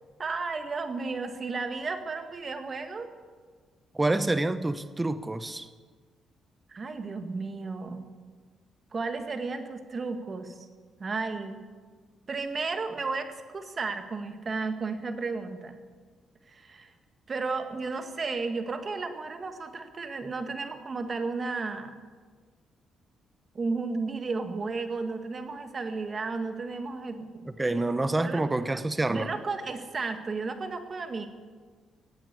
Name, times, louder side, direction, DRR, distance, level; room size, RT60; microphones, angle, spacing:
voice 1, 0.2-3.1 6.7-8.1 8.9-10.7 11.0-11.6 12.3-15.8 16.4-16.9 17.3-22.0 23.5-27.8 28.2-28.4 29.1-31.3, right 4 dB, 40° right, 7 dB, 1.9 m, -33 dB
voice 2, 3.9-5.7 27.6-29.3, right 2 dB, 15° right, 12 dB, 0.9 m, -27 dB
16.5 x 8.8 x 9.8 m, 1.5 s
cardioid pair, 90°, 0 cm